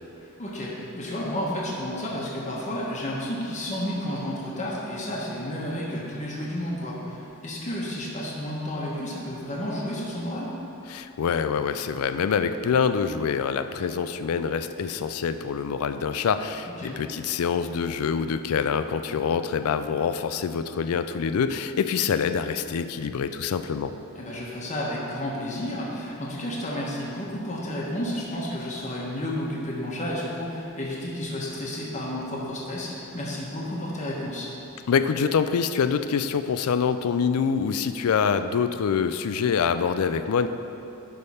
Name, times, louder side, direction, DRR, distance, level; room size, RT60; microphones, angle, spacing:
voice 1, 0.2-10.6 16.8-17.0 24.2-34.5, left 1 dB, 35° left, -5 dB, 1.1 m, -31 dB
voice 2, 10.9-23.9 34.9-40.5, left 6 dB, 80° left, 10 dB, 0.4 m, -25 dB
10.5 x 3.5 x 5.5 m, 2.9 s
head